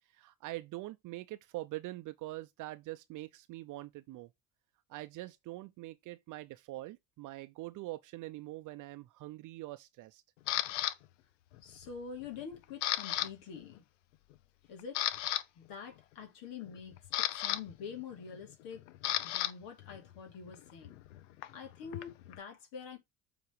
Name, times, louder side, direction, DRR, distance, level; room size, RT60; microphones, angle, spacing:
voice 1, 0.1-4.3 4.9-10.2, right 18 dB, 55° right, 0.7 m, -44 dB
Camera, 10.5-10.9 11.5-11.9 12.2-13.3 13.5-13.8 14.3-14.4 14.8-15.4 16.6-19.5 19.8-22.4, left 13 dB, 80° left, 0.7 m, -35 dB
voice 2, 11.6-13.8 14.7-15.1 15.5-16.9 17.4-18.9 19.2-21.0 21.5-23.0, left 6 dB, 65° left, 2.7 m, -46 dB
7.1 x 4.0 x 4.7 m
hypercardioid pair, 60°, 36 cm